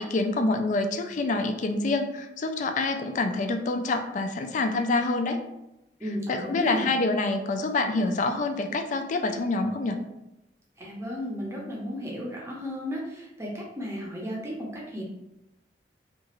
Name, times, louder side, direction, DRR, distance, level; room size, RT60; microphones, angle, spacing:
voice 1, 0.0-5.4 6.3-10.0, left 2 dB, 45° left, 6 dB, 0.3 m, -26 dB
voice 2, 6.0-6.9 10.8-15.0, equal, 15° right, -3 dB, 0.6 m, -34 dB
2.9 x 2.4 x 2.9 m, 0.92 s
head